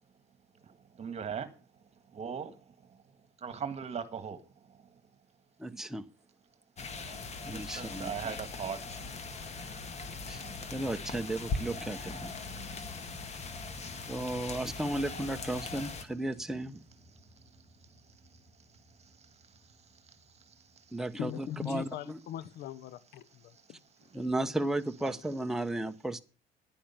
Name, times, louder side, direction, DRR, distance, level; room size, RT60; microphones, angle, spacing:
voice 1, 0.6-1.5 2.1-3.0 3.4-5.0 6.9-7.2 7.5-9.0 12.4-12.5 17.1-17.3 17.8-21.0 23.5-23.7 24.1-24.3 25.0-25.1, right 7 dB, 40° right, 1.7 m, -42 dB
voice 2, 5.6-6.0 7.4-8.1 10.3-10.4 10.7-12.3 14.1-16.8 20.9-22.2 24.1-26.2, right 1 dB, 5° right, 0.9 m, -34 dB
sound 1, 6.8-16.0, left 3 dB, 40° left, 2.0 m, -40 dB
sound 2, 9.4-21.7, right 1 dB, 20° left, 3.4 m, -58 dB
voice 3, 21.2-24.1, left 11 dB, 75° left, 0.8 m, -41 dB
10.5 x 10.0 x 7.2 m
cardioid pair, 110°, 17 cm